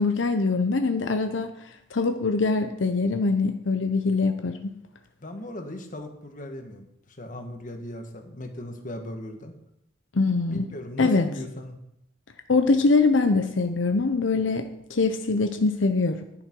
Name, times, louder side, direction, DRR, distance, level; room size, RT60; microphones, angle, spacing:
voice 1, 0.0-1.5 1.9-4.7 10.1-10.7 11.0-11.3 12.5-16.2, left 3 dB, 85° left, 7 dB, 0.8 m, -23 dB
voice 2, 5.2-9.5 10.5-11.8, left 1 dB, 45° left, 5 dB, 1.5 m, -37 dB
11.0 x 9.9 x 4.6 m, 0.79 s
head